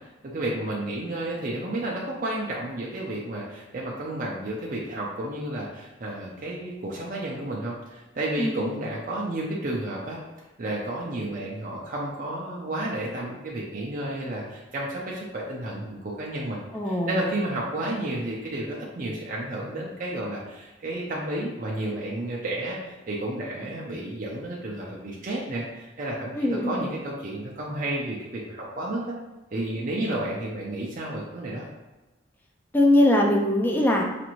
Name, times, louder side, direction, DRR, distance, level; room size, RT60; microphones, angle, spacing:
voice 1, 0.2-10.2 10.6-29.1 29.5-31.6, right 1 dB, 45° right, -4 dB, 0.5 m, -31 dB
voice 2, 16.7-17.2 26.4-26.8 32.7-34.0, left 1 dB, 10° left, 0 dB, 0.4 m, -21 dB
4.9 x 2.6 x 3.0 m, 1.1 s
head